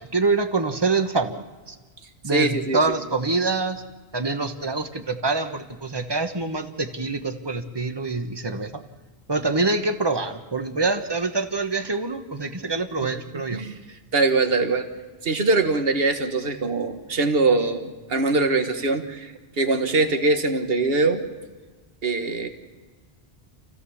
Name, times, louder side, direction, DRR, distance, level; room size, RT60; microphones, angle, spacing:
voice 1, 0.0-1.8 2.2-3.8 4.1-8.8 9.3-13.6, right 3 dB, 25° right, 7 dB, 1.3 m, -25 dB
voice 2, 2.3-2.8 13.5-14.9 15.2-21.2 22.0-22.5, right 3 dB, 65° right, 7 dB, 1.7 m, -22 dB
28.5 x 16.0 x 7.2 m, 1.4 s
omnidirectional pair, 1.1 m